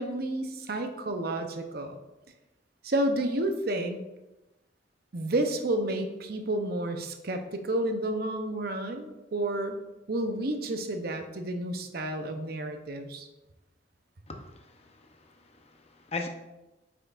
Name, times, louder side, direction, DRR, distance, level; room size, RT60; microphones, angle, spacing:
voice 1, 0.0-2.0 2.8-4.0 5.1-13.3, right 1 dB, 55° right, 6 dB, 0.7 m, -31 dB
voice 2, 14.3-16.3, left 3 dB, 35° left, 4 dB, 0.7 m, -40 dB
8.2 x 5.7 x 2.5 m, 1.0 s
head